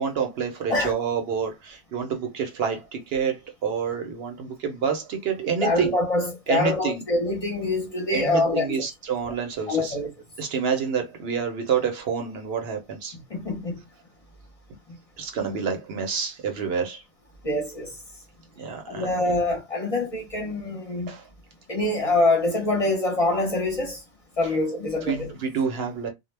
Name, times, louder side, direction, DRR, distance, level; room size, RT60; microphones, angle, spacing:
voice 1, 0.0-5.9 6.5-7.0 8.1-9.9 10.4-13.1 15.2-17.0 18.6-19.2 21.1-21.2 25.1-26.1, right 6 dB, 70° right, 0.8 m, -28 dB
voice 2, 5.6-8.9 9.3-9.4 9.7-10.1 13.1-13.8 17.4-18.0 18.9-21.1 21.7-24.0 24.4-25.3, left 2 dB, 40° left, 0.6 m, -25 dB
2.1 x 2.0 x 3.2 m
omnidirectional pair, 1.1 m